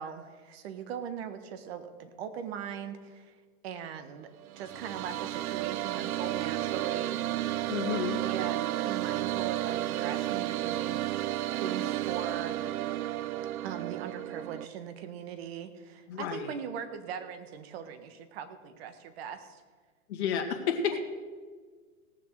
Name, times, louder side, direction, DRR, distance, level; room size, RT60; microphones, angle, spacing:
voice 1, 0.0-4.3 4.6-7.2 8.2-11.0 11.6-12.6 13.6-19.6, right 8 dB, 45° right, 9 dB, 1.5 m, -40 dB
sound 1, 4.4-14.6, right 14 dB, 75° right, 0.6 m, -32 dB
voice 2, 7.7-8.2 16.1-16.5 20.1-20.9, left 7 dB, 50° left, 2 dB, 2.2 m, -31 dB
18.0 x 7.4 x 6.6 m, 1.5 s
hypercardioid pair, 140°, 43 cm